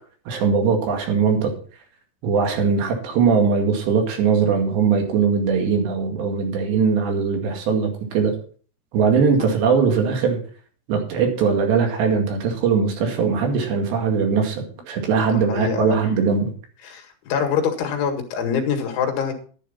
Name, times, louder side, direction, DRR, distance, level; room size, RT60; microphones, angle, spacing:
voice 1, 0.3-1.5 2.2-8.4 8.9-10.4 10.9-16.5, right 5 dB, 70° right, 3 dB, 4.3 m, -20 dB
voice 2, 15.2-16.0 16.8-19.3, left 7 dB, 85° left, 5 dB, 4.3 m, -25 dB
12.0 x 11.5 x 4.2 m, 0.42 s
omnidirectional pair, 5.3 m